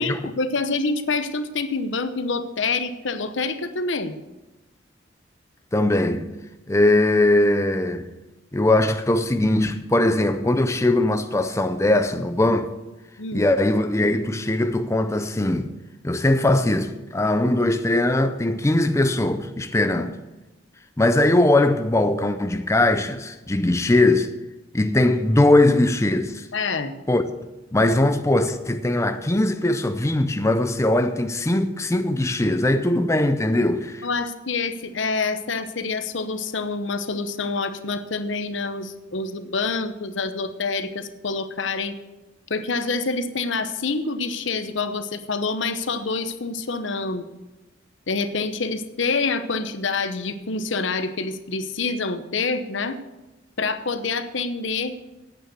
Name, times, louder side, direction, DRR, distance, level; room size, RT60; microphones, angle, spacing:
voice 1, 0.0-4.2 13.2-13.5 19.8-20.1 26.5-26.9 34.0-42.0 42.5-47.3 48.1-53.0 53.6-55.0, left 4 dB, 75° left, 0.9 m, -27 dB
voice 2, 5.7-6.3 6.7-8.1 8.5-12.7 13.3-15.7 16.0-20.1 21.0-24.3 24.7-26.5 27.1-27.3 27.7-34.1, left 1 dB, 15° left, 0.5 m, -20 dB
9.5 x 8.6 x 8.1 m
head